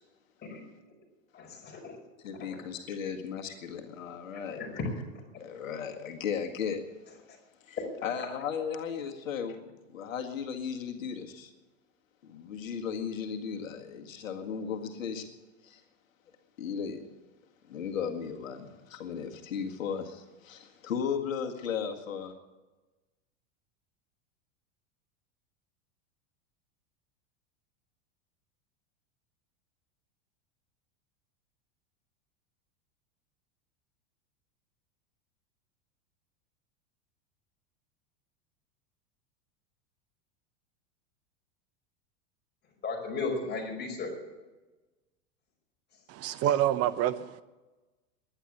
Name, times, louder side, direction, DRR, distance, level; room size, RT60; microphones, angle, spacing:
voice 1, 1.3-1.9 2.5-2.6 4.5-4.9 42.8-44.1, left 4 dB, 25° left, 5.1 m, -35 dB
voice 2, 2.2-4.6 5.4-6.8 7.7-11.5 12.2-15.3 15.6-15.8 16.6-17.0 17.7-22.3, left 7 dB, 90° left, 2.0 m, -36 dB
voice 3, 46.1-47.4, right 11 dB, 40° right, 0.8 m, -27 dB
11.0 x 10.5 x 9.8 m
hypercardioid pair, 115°, 39 cm